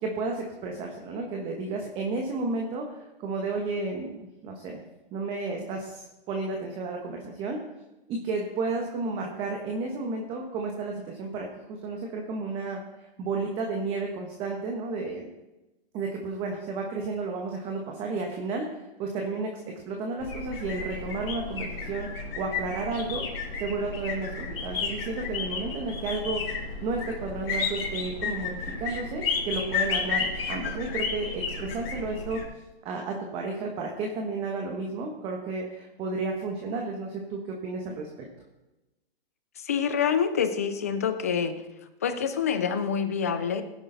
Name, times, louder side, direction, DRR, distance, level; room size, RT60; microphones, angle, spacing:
voice 1, 0.0-4.8 5.1-7.6 8.1-15.2 15.9-23.2 23.6-26.4 26.8-32.4 32.8-38.1, right 3 dB, 15° right, 1 dB, 1.2 m, -32 dB
sound 1, 20.2-32.5, left 5 dB, 65° left, 4.2 m, -32 dB
voice 2, 39.6-41.5 42.0-43.6, left 7 dB, 15° left, 10 dB, 0.3 m, -26 dB
16.5 x 10.0 x 3.9 m, 1.0 s
hypercardioid pair, 160°, 31 cm